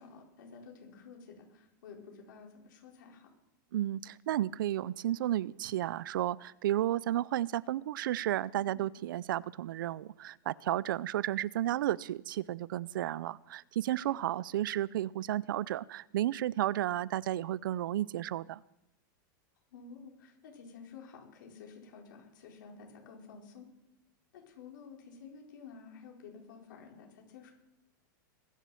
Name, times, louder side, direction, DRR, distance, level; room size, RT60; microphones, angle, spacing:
voice 1, 0.0-3.3 8.5-8.8 14.0-14.2 19.7-23.7 24.3-27.5, left 5 dB, 70° left, 1 dB, 4.4 m, -51 dB
voice 2, 3.7-18.6, right 13 dB, 80° right, 22 dB, 0.5 m, -33 dB
21.5 x 7.4 x 7.0 m, 0.87 s
supercardioid pair, 170°, 11 cm